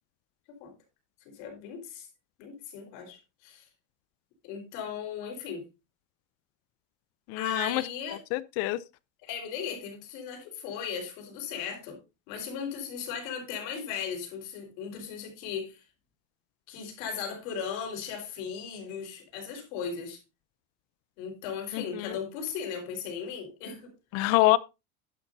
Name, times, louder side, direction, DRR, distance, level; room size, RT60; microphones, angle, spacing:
voice 1, 1.2-2.1 2.4-3.7 4.4-5.6 7.3-8.2 9.2-12.0 12.3-15.8 16.7-20.2 21.2-23.9, left 7 dB, 65° left, 4.3 m, -37 dB
voice 2, 7.3-7.8 8.3-8.8 21.7-22.2 24.1-24.6, left 16 dB, 40° left, 0.5 m, -25 dB
11.0 x 10.5 x 2.6 m
cardioid pair, 180°, 39 cm